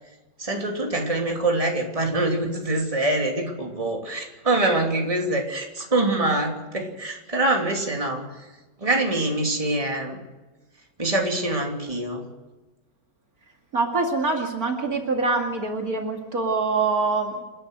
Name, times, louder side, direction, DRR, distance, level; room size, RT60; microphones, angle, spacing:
voice 1, 0.4-8.3 8.8-10.2 11.0-12.2, right 2 dB, 20° right, 1 dB, 3.0 m, -24 dB
voice 2, 13.7-17.4, right 3 dB, 55° right, 2 dB, 2.8 m, -24 dB
28.5 x 11.5 x 8.0 m, 1.2 s
omnidirectional pair, 1.9 m